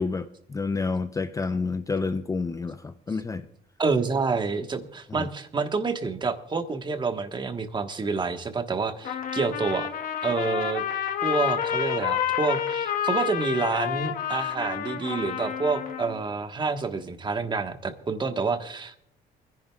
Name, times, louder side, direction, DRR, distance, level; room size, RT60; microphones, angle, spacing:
voice 1, 0.0-3.4 5.1-5.3, left 4 dB, 20° left, 10 dB, 0.5 m, -29 dB
voice 2, 3.8-9.9 10.2-10.8 11.2-19.0, right 4 dB, 25° right, 7 dB, 1.3 m, -28 dB
Trumpet, 9.0-16.2, left 9 dB, 55° left, 1.3 m, -29 dB
28.5 x 10.5 x 2.3 m, 0.70 s
cardioid pair, 110°, 17 cm